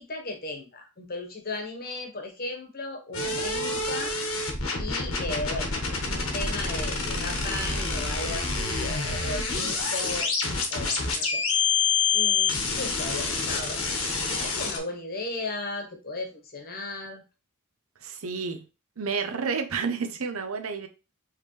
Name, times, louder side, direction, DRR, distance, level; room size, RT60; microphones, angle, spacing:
voice 1, 0.0-10.3 10.7-11.4 12.1-13.8 14.3-17.2, left 2 dB, 45° left, 1.2 m, -36 dB
sound 1, 3.1-14.8, left 4 dB, 75° left, 1.4 m, -27 dB
voice 2, 18.0-18.6 19.0-20.9, right 5 dB, 75° right, 0.7 m, -30 dB
4.8 x 3.3 x 3.2 m
head